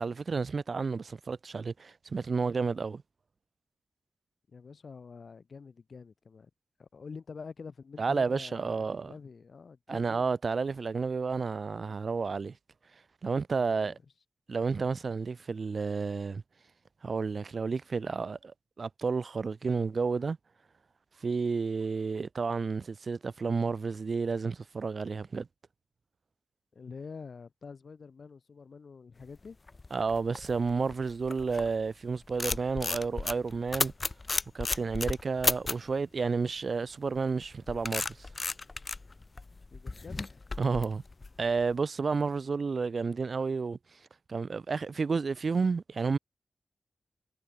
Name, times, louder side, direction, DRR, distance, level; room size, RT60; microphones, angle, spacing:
voice 1, 0.0-3.0 8.0-9.1 9.9-12.5 13.2-14.0 14.5-16.4 17.0-20.4 21.2-25.5 29.9-33.9 34.5-38.3 40.6-41.0 41.4-43.8 44.3-46.2, right 4 dB, 50° right, 0.9 m, -31 dB
voice 2, 4.5-6.5 6.8-10.2 13.5-13.9 26.7-29.6 39.7-40.4, left 5 dB, 55° left, 3.1 m, -47 dB
sound 1, 29.5-31.8 32.2-35.9 37.1-41.6, left 3 dB, 30° left, 1.4 m, -34 dB
wide cardioid pair, 120°, 0 cm